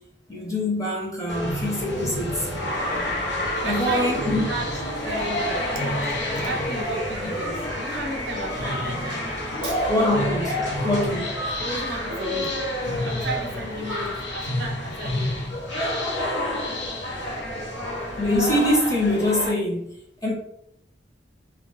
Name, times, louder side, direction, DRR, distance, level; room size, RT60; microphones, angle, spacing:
voice 1, 0.3-2.5 3.6-4.4 9.9-10.5 10.8-11.3 18.2-19.9 20.2-20.3, left 1 dB, 20° left, 0.7 m, -24 dB
sound 1, 1.3-19.5, left 1 dB, 75° left, 0.9 m, -29 dB
sound 2, 2.6-15.5, left 2 dB, 55° left, 0.6 m, -35 dB
Mallet percussion, 3.5-7.6, right 5 dB, 30° right, 0.3 m, -41 dB
voice 2, 3.6-5.9 6.4-10.3 11.6-12.5 13.0-15.4, right 2 dB, 70° right, 0.7 m, -34 dB
2.3 x 2.0 x 3.8 m
head